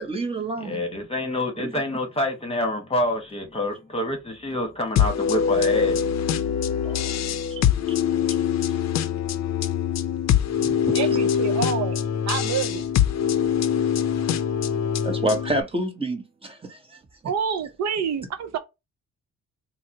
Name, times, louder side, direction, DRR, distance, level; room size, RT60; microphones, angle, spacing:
voice 1, 0.0-0.8 1.6-1.7 6.8-7.2 7.5-8.0 8.5-8.7 10.5-11.1 15.0-17.0, right 2 dB, 20° right, 0.8 m, -30 dB
voice 2, 0.6-6.0, left 1 dB, 20° left, 1.2 m, -27 dB
sound 1, 5.0-15.6, left 8 dB, 60° left, 0.5 m, -23 dB
voice 3, 10.9-12.0 12.3-12.8 17.2-18.6, right 7 dB, 65° right, 0.6 m, -27 dB
4.1 x 2.0 x 2.7 m
cardioid pair, 90°, 30 cm